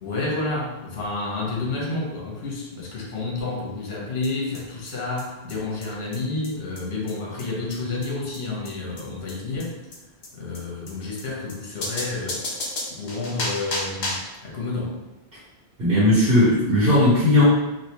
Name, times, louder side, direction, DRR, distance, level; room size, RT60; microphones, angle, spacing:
voice 1, 0.0-9.7 10.3-12.6 12.9-14.9, left 3 dB, 75° left, -2 dB, 1.1 m, -30 dB
sound 1, 4.2-4.3 4.5-4.6 4.9-5.0 5.2-5.3 5.5-5.6 5.8-5.9 6.1-6.2 6.4-6.5 6.8-6.9 7.1-7.2 7.4-7.5 7.7-7.8 8.0-8.1 8.3-8.4 8.7-8.8 9.0-9.1 9.3-9.4 9.6-9.7 9.9-10.0 10.2-10.3 10.5-10.6 10.9-11.0 11.2-11.3 11.5-11.6 11.8-14.3, left 1 dB, 50° left, 0.8 m, -31 dB
voice 2, 15.8-17.4, left 1 dB, 65° right, -9 dB, 1.2 m, -17 dB
3.1 x 2.7 x 2.8 m, 0.99 s
omnidirectional pair, 1.1 m